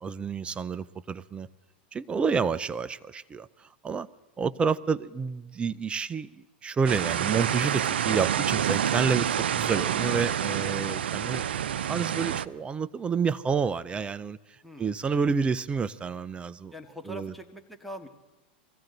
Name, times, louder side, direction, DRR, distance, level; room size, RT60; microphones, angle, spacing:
voice 1, 0.0-1.5 1.9-4.1 4.4-6.3 6.6-11.4 11.8-16.7 17.1-17.3, right 5 dB, 20° right, 16 dB, 0.5 m, -29 dB
sound 1, 6.9-12.5, right 9 dB, 85° right, 0.5 m, -28 dB
voice 2, 14.6-15.0 16.7-18.1, equal, ahead, 2 dB, 1.8 m, -42 dB
22.5 x 16.0 x 3.9 m, 1.1 s
hypercardioid pair, 115°, 6 cm